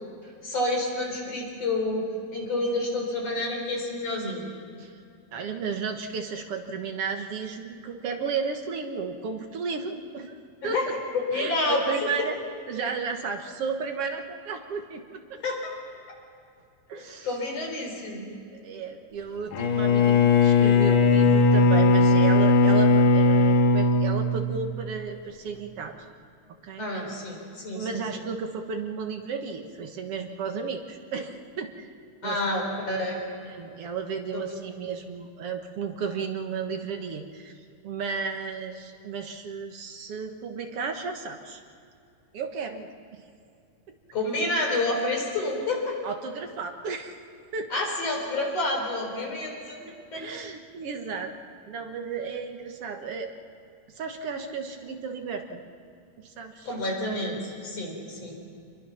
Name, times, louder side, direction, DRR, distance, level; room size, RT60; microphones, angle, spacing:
voice 1, 0.4-2.1 2.3-4.4 10.6-10.9 11.1-11.8 15.4-15.7 16.9-18.4 26.8-28.0 32.2-33.2 34.3-34.4 44.1-46.0 47.7-50.3 56.7-58.4, left 2 dB, 50° left, 0 dB, 5.2 m, -29 dB
voice 2, 5.3-10.4 10.6-10.8 11.3-12.4 12.7-15.4 16.9-17.3 18.6-26.1 26.6-26.9 27.7-31.9 32.2-32.4 33.5-37.5 37.8-41.6 42.3-43.2 43.9-44.0 46.0-47.2 47.5-47.7 50.1-51.3 51.7-53.3 53.9-55.6 56.2-56.7, right 5 dB, 55° right, 4 dB, 2.0 m, -33 dB
Bowed string instrument, 19.5-24.9, left 3 dB, 80° left, 3.0 m, -19 dB
26.5 x 22.5 x 5.9 m, 2.4 s
omnidirectional pair, 3.8 m